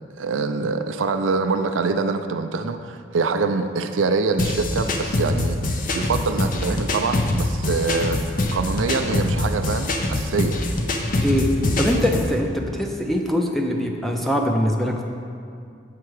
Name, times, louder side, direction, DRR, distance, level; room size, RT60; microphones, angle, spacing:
voice 1, 0.2-5.6 5.9-8.2 8.5-10.6, right 4 dB, 85° right, 8 dB, 0.4 m, -24 dB
sound 1, 4.4-12.3, left 1 dB, 45° left, 0.6 m, -24 dB
voice 2, 11.8-15.0, equal, ahead, 1 dB, 0.5 m, -22 dB
7.6 x 5.8 x 4.7 m, 2.4 s
head